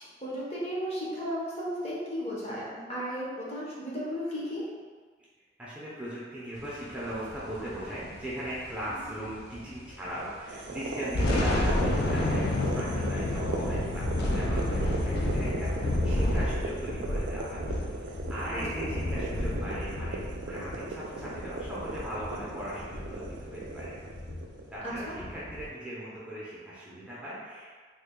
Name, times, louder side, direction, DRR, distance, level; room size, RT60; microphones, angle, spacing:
voice 1, 0.0-4.6 9.0-9.1 11.2-11.4 14.2-14.4 18.5-18.6 25.1-25.2, equal, 35° left, -6 dB, 0.8 m, -35 dB
voice 2, 5.6-17.6 18.0-20.2 20.5-24.0 24.7-27.8, equal, 5° right, -9 dB, 0.6 m, -39 dB
sound 1, 7.1-9.9 10.2-10.3 10.9-25.7, left 1 dB, 55° left, 0.4 m, -31 dB
sound 2, 10.5-24.7, right 2 dB, 70° right, 0.3 m, -38 dB
3.2 x 2.2 x 3.6 m, 1.5 s
head